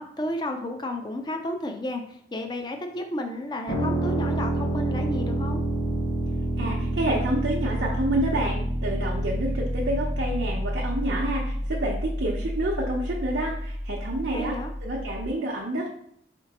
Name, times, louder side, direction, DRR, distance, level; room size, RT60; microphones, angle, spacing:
voice 1, 0.0-5.6 14.3-14.7, left 1 dB, 25° left, 4 dB, 0.4 m, -32 dB
sound 1, 3.7-15.3, right 1 dB, 70° left, 1.0 m, -28 dB
voice 2, 6.6-14.5 14.8-15.9, right 1 dB, 80° right, -4 dB, 0.7 m, -28 dB
4.4 x 3.8 x 2.9 m, 0.70 s
head